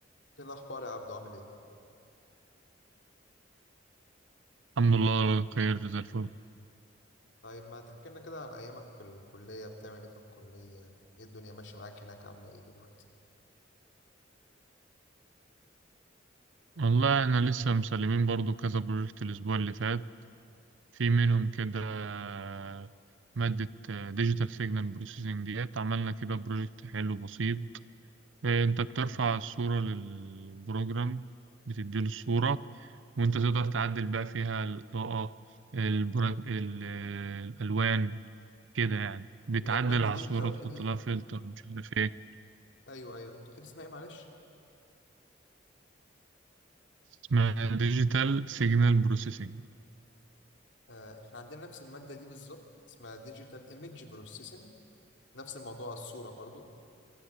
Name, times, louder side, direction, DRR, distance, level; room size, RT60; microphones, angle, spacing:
voice 1, 0.4-1.5 7.4-10.1 10.4-12.9 29.0-29.2 39.6-41.1 42.9-44.3 50.9-52.6 53.0-54.7 55.3-56.7, left 2 dB, 70° left, 2.9 m, -45 dB
voice 2, 4.8-6.3 16.8-20.1 21.0-22.9 23.4-27.7 28.4-31.3 31.7-32.9 33.2-35.4 35.7-38.2 38.7-42.1 47.3-49.7, right 4 dB, 80° right, 0.6 m, -30 dB
26.5 x 24.5 x 8.2 m
head